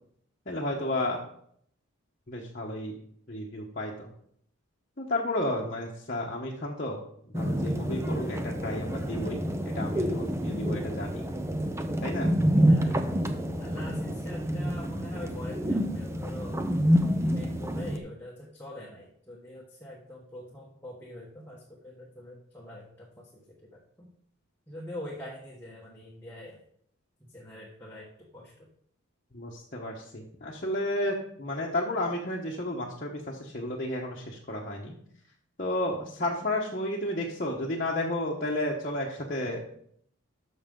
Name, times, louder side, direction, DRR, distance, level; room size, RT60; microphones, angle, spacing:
voice 1, 0.5-1.2 2.3-2.9 3.3-4.1 5.0-7.0 7.3-11.3 12.0-12.3 29.3-35.0 35.6-39.6, left 1 dB, 40° left, -3 dB, 1.1 m, -32 dB
sound 1, 7.3-18.0, equal, 10° right, 0.6 m, -28 dB
voice 2, 12.6-13.0 13.6-16.6 17.1-24.1 24.7-26.6 27.2-28.7, left 1 dB, 10° left, -4 dB, 1.2 m, -43 dB
12.0 x 6.4 x 3.8 m, 0.68 s
head